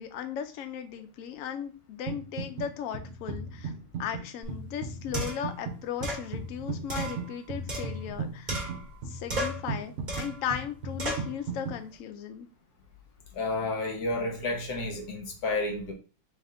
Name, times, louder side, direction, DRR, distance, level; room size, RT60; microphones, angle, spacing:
voice 1, 0.0-3.7 4.0-8.5 9.1-12.5, left 8 dB, 80° left, 0.7 m, -36 dB
sound 1, 2.1-2.7 2.9-11.8, right 4 dB, 65° right, 0.7 m, -37 dB
sound 2, 4.4-4.5 5.1-5.5 6.0-6.3 6.9-8.2 8.5-9.0 9.3-9.7 10.1-10.4 11.0-11.3, right 1 dB, 30° right, 1.2 m, -34 dB
voice 2, 13.3-15.9, left 2 dB, 60° left, 1.4 m, -31 dB
3.4 x 3.1 x 3.7 m
omnidirectional pair, 2.0 m